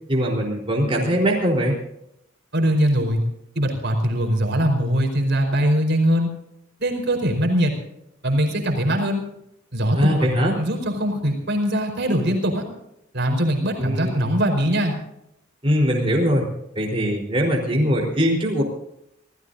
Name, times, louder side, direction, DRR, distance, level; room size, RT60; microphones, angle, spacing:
voice 1, 0.1-1.8 9.9-10.6 13.8-14.4 15.6-16.5 16.8-18.6, equal, 30° right, -2 dB, 4.0 m, -21 dB
voice 2, 2.5-3.2 3.5-6.3 6.8-7.7 8.2-9.2 9.7-12.6 13.1-14.9, equal, 60° right, 3 dB, 4.6 m, -21 dB
27.5 x 16.5 x 2.7 m, 0.81 s
head